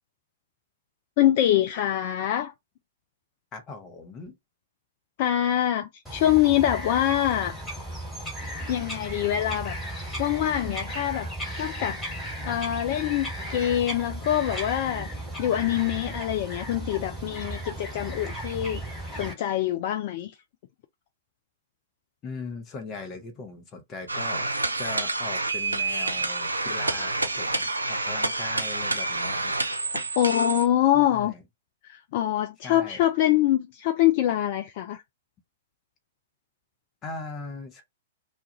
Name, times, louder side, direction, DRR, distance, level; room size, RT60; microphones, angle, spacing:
voice 1, 1.2-2.5 5.2-7.5 8.7-9.8 10.2-11.3 11.6-12.0 12.5-20.4 30.2-31.3 31.8-35.0, left 12 dB, 45° left, 0.4 m, -24 dB
voice 2, 3.5-4.3 22.2-24.5 24.8-29.5 30.9-31.4 32.6-33.0 37.0-37.8, left 4 dB, 25° left, 0.9 m, -39 dB
Bird vocalization bird call bird song, 6.1-19.3, right 1 dB, 5° left, 1.6 m, -35 dB
wyroby metalowe, 24.1-30.7, right 2 dB, 85° right, 0.5 m, -28 dB
2.4 x 2.3 x 2.9 m
figure-of-eight pair, 110°, 0 cm